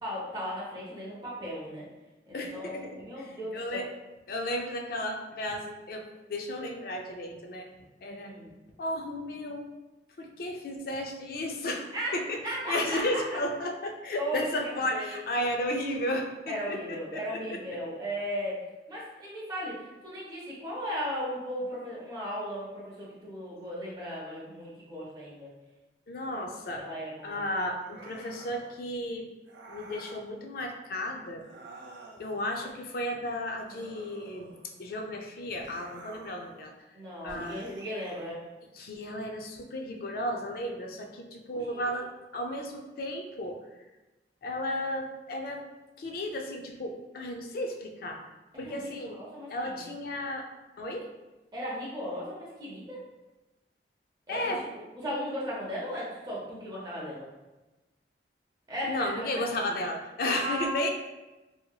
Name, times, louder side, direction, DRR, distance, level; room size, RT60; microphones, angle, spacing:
voice 1, 0.0-1.9 2.3-3.9 8.1-8.5 11.9-13.4 14.2-15.2 16.5-18.6 18.9-25.5 26.8-27.4 36.9-38.4 41.7-42.1 48.5-49.9 51.5-53.0 54.3-57.3 58.7-59.0 60.3-60.9, equal, 25° right, -7 dB, 0.6 m, -36 dB
voice 2, 2.3-3.0 3.5-3.9 4.3-7.7 8.0-8.3 8.8-9.7 10.2-11.9 12.1-12.4 12.7-17.6 26.1-26.8 27.2-29.3 29.7-31.4 32.2-34.5 34.8-36.7 37.2-37.6 38.8-42.1 42.3-43.6 44.4-45.6 46.0-48.2 48.6-49.2 49.5-50.5 50.8-51.0 54.3-54.6 58.9-60.9, left 1 dB, 55° left, 3 dB, 0.4 m, -33 dB
sound 1, 27.8-28.7 29.5-30.2 31.4-32.4 33.7-34.8 35.6-36.5 37.3-38.3, right 2 dB, 90° right, 0.4 m, -49 dB
2.8 x 2.8 x 2.2 m, 1.1 s
head